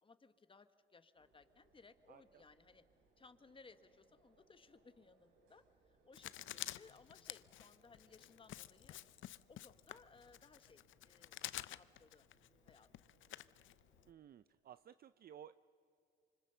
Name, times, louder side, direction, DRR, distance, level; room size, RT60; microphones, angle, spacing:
voice 1, 0.0-2.8 3.2-9.0 9.5-12.3 12.6-12.9, left 4 dB, 25° left, 10 dB, 1.4 m, -63 dB
sound 1, 1.1-14.1, right 3 dB, 90° right, 5.3 m, -75 dB
Writing, 6.1-14.1, left 14 dB, 75° left, 0.6 m, -50 dB
voice 2, 14.1-15.7, right 9 dB, 50° right, 14 dB, 0.5 m, -57 dB
26.5 x 25.0 x 6.8 m, 2.5 s
cardioid pair, 90°, 20 cm